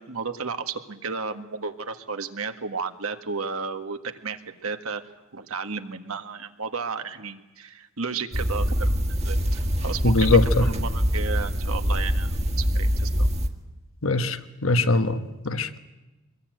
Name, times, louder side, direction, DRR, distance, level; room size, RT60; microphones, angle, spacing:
voice 1, 0.0-5.0 5.3-12.3 12.6-13.3, right 5 dB, 80° right, 1.7 m, -33 dB
sound 1, 8.3-13.5, equal, 30° right, 1.7 m, -24 dB
voice 2, 10.0-10.7 14.0-15.8, left 3 dB, 65° left, 1.2 m, -22 dB
24.5 x 21.5 x 9.2 m
head